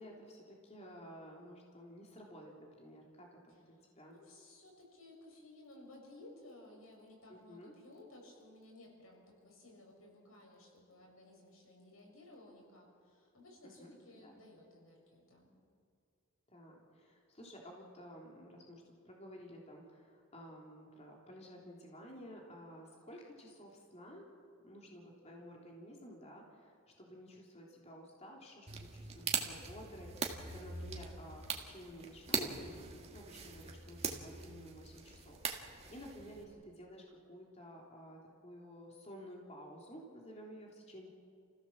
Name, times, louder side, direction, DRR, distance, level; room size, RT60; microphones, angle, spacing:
voice 1, 0.0-4.2 7.3-7.7 13.6-13.9 14.2-14.4 16.5-24.2 24.6-41.1, equal, 30° left, -1 dB, 3.3 m, -53 dB
voice 2, 4.0-15.6, left 1 dB, 90° left, -1 dB, 6.6 m, -57 dB
sound 1, 28.7-36.4, right 5 dB, 30° right, 2.0 m, -41 dB
29.0 x 16.0 x 7.4 m, 2.3 s
head